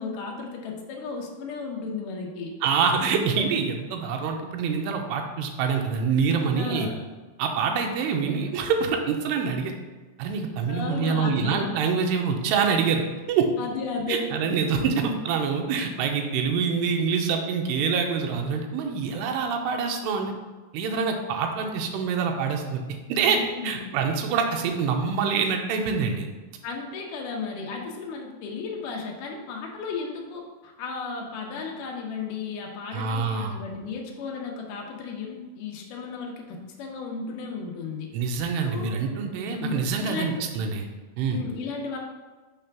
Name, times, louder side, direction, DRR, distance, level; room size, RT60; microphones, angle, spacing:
voice 1, 0.0-2.5 6.5-7.0 10.7-11.7 13.6-14.4 23.3-23.9 26.6-38.1 38.6-38.9 39.5-40.4 41.3-42.0, left 4 dB, 85° left, 0 dB, 1.8 m, -34 dB
voice 2, 2.6-6.9 7.4-9.7 10.2-13.5 14.1-20.3 20.7-22.8 23.1-26.3 32.9-33.6 38.1-40.9 41.2-41.4, right 5 dB, 80° right, 3 dB, 2.8 m, -26 dB
6.9 x 3.4 x 5.8 m, 1.3 s
omnidirectional pair, 4.9 m